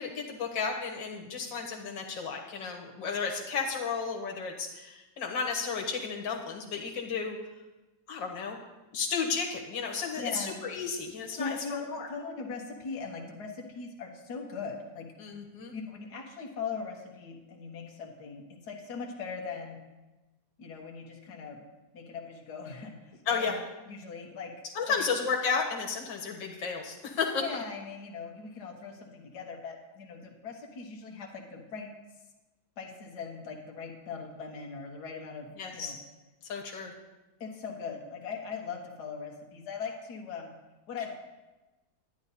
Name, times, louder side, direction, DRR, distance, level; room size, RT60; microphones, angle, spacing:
voice 1, 0.0-7.4 8.1-8.6 8.9-12.1 15.2-15.7 23.3-23.6 24.8-27.4 35.6-35.9 36.5-36.9, left 5 dB, 90° left, 0 dB, 2.0 m, -33 dB
voice 2, 10.2-10.6 11.4-15.1 15.7-19.8 20.6-21.6 21.9-22.9 23.3-23.5 23.9-24.5 24.9-25.1 27.4-31.9 32.8-35.5 35.7-35.9 37.4-40.5 40.9-41.1, left 5 dB, 60° left, 0 dB, 1.9 m, -40 dB
11.5 x 9.9 x 4.1 m, 1.1 s
omnidirectional pair, 2.0 m